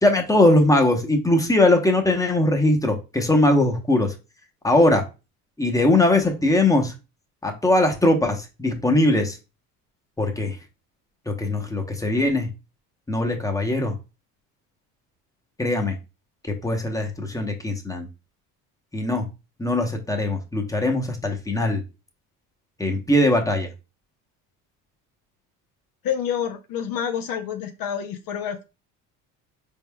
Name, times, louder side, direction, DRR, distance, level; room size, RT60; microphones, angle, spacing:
voice 1, 0.0-4.1 4.6-5.0 5.6-6.9 7.4-9.4 10.2-10.6 11.3-12.5 13.1-13.9 15.6-16.0 16.6-18.1 18.9-19.2 19.6-21.8 22.8-23.7, left 1 dB, 10° left, 4 dB, 0.9 m, -20 dB
voice 2, 26.0-28.6, left 8 dB, 55° left, 7 dB, 0.6 m, -28 dB
4.1 x 3.6 x 2.2 m, 0.29 s
supercardioid pair, 85°, 41 cm